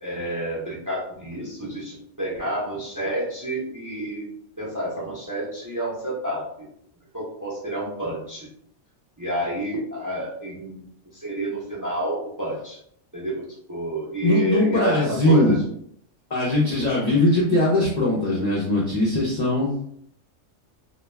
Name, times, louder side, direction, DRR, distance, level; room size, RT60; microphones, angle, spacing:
voice 1, 0.0-4.3 4.6-6.7 7.1-8.5 9.2-10.9 11.1-12.8 13.1-15.6, right 1 dB, 25° right, -5 dB, 0.5 m, -29 dB
voice 2, 14.2-15.6 16.3-19.7, left 1 dB, 50° left, -5 dB, 0.5 m, -20 dB
2.2 x 2.2 x 3.1 m, 0.68 s
omnidirectional pair, 1.3 m